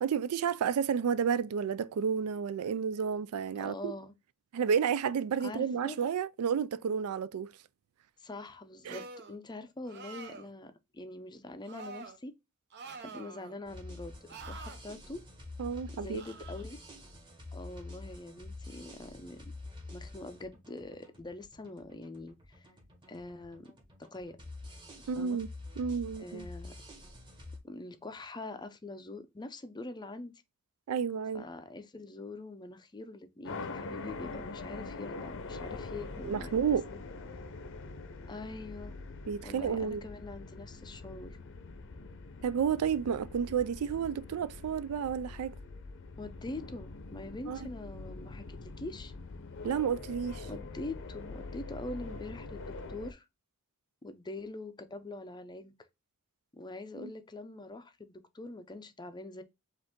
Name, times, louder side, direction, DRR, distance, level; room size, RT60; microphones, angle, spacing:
voice 1, 0.0-3.9 4.5-7.5 8.9-9.0 15.6-16.2 25.1-25.5 25.8-26.5 30.9-31.4 36.2-36.9 39.3-40.0 42.4-45.5 47.5-47.7 49.6-50.5 57.0-57.1, right 7 dB, 75° right, 0.4 m, -31 dB
voice 2, 3.6-4.1 5.4-6.0 8.2-12.3 13.0-15.2 16.0-16.8 17.5-19.5 19.9-22.7 23.1-23.7 24.0-24.4 25.2-25.4 26.2-26.7 27.6-30.4 31.3-36.5 38.3-39.0 39.4-41.4 46.2-49.1 50.4-53.2 54.0-55.7 56.5-59.4, left 2 dB, 20° left, 0.5 m, -44 dB
sound 1, 8.9-9.4 9.9-10.5 11.6-12.2 12.7-13.6 14.3-14.8 16.2-16.6, right 4 dB, 50° right, 0.7 m, -46 dB
sound 2, 13.7-27.6, left 2 dB, 20° right, 1.5 m, -47 dB
sound 3, 33.4-53.1, left 3 dB, 60° left, 0.6 m, -44 dB
5.1 x 2.5 x 3.6 m
head